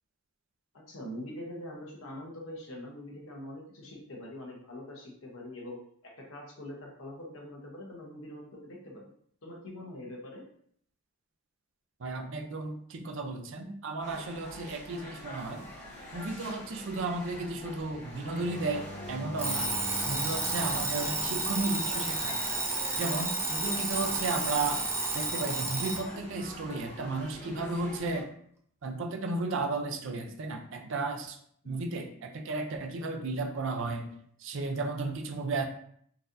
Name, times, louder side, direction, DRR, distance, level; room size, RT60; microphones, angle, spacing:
voice 1, 0.7-9.1 9.4-10.4 31.6-31.9, left 1 dB, 75° left, -1 dB, 0.8 m, -44 dB
voice 2, 12.0-15.7 16.1-19.7 20.1-22.4 22.9-24.9 25.1-28.3 28.8-31.4 31.7-34.1 34.4-35.6, right 3 dB, 65° right, 5 dB, 0.5 m, -34 dB
sound 1, 14.0-28.2, left 1 dB, 35° left, 0.9 m, -45 dB
sound 2, 18.3-22.9 26.2-26.7, equal, 5° left, 1.1 m, -45 dB
Alarm, 19.4-26.1, right 2 dB, 10° right, 0.5 m, -31 dB
3.9 x 2.6 x 2.5 m, 0.63 s
head